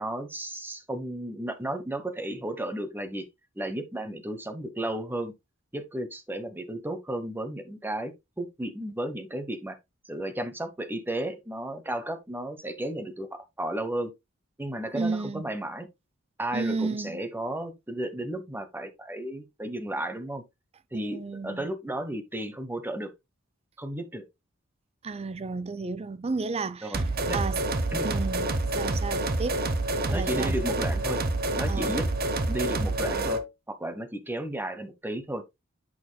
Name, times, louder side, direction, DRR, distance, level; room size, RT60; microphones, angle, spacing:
voice 1, 0.0-3.2 3.6-5.3 5.7-9.8 10.1-14.1 14.6-15.9 16.4-20.4 20.9-23.1 23.8-24.3 26.8-27.4 27.9-28.1 30.1-31.2 31.6-32.1 32.5-35.4, right 1 dB, 10° right, 1.0 m, -33 dB
voice 2, 14.9-15.4 16.5-17.2 20.9-21.7 25.0-27.0 27.3-27.6 28.0-28.5 28.7-29.7 30.1-30.6 31.7-32.0, right 4 dB, 30° right, 0.5 m, -32 dB
sound 1, 26.9-33.5, right 2 dB, 50° right, 0.9 m, -27 dB
8.6 x 5.9 x 2.3 m
head